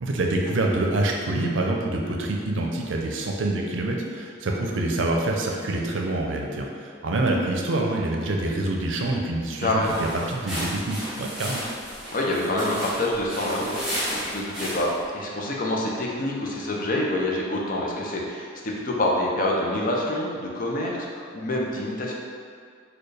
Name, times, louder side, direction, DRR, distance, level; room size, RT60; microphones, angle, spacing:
voice 1, 0.0-11.6, right 2 dB, 90° right, 0 dB, 0.5 m, -26 dB
voice 2, 9.6-10.0 12.1-13.9 14.3-22.1, left 1 dB, 45° left, -2 dB, 0.5 m, -26 dB
sound 1, 9.8-15.1, equal, 5° right, 0.9 m, -33 dB
4.3 x 2.2 x 3.2 m, 2.2 s
head